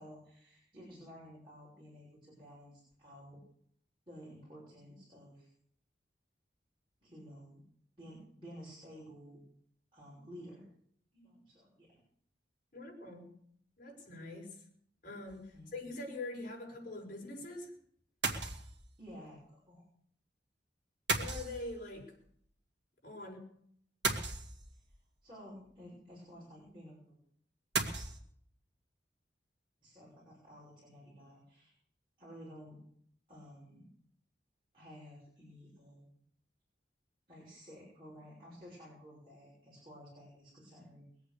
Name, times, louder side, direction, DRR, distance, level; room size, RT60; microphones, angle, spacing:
voice 1, 0.0-3.4 4.1-5.5 7.0-7.6 8.0-9.4 9.9-10.7 11.1-11.9 15.5-15.8 19.0-19.8 25.2-27.1 29.8-31.7 32.2-32.8 33.3-33.9 34.7-36.1 37.3-41.1, equal, 30° right, -7 dB, 6.1 m, -53 dB
voice 2, 12.7-13.3 13.8-14.6 15.0-17.7 21.2-22.2 23.0-23.5, left 2 dB, 50° left, -2 dB, 5.8 m, -44 dB
sound 1, 15.3-15.6 18.2-18.9 21.1-22.0 24.0-25.0 27.7-28.2, right 3 dB, 75° right, 2.0 m, -35 dB
22.0 x 8.3 x 6.8 m, 0.66 s
head